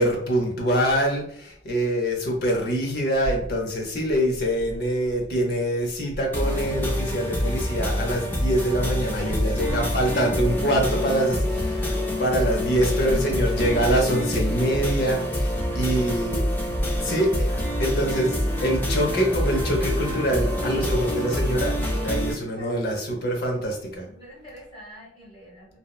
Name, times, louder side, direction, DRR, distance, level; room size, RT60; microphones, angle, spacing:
voice 1, 0.0-16.5 17.0-17.5 17.8-21.7 22.0-24.1, right 1 dB, 60° left, 1 dB, 0.7 m, -24 dB
sound 1, 6.3-22.3, equal, 10° left, 0.4 m, -26 dB
voice 2, 9.0-10.0 11.8-12.2 12.9-13.0 17.5-17.7 20.6-22.1 22.5-22.7 24.0-25.8, right 1 dB, 35° left, -5 dB, 1.3 m, -45 dB
2.8 x 2.0 x 2.3 m, 0.66 s
head